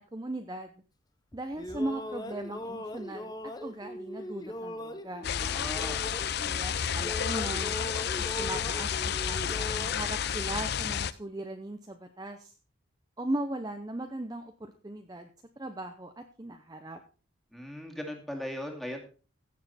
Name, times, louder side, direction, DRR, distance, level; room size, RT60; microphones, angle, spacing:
voice 1, 0.1-0.7 1.3-5.3 6.5-7.8 8.1-12.5 13.2-15.3 15.6-17.0, right 1 dB, 20° right, 5 dB, 0.7 m, -38 dB
sound 1, 1.3-6.7 7.0-9.9, left 1 dB, 20° left, 0.7 m, -40 dB
sound 2, 5.2-11.1, left 8 dB, 50° left, 0.5 m, -31 dB
voice 2, 5.4-6.0 17.5-19.0, left 1 dB, ahead, 1 dB, 2.2 m, -38 dB
15.5 x 7.5 x 4.2 m, 0.37 s
head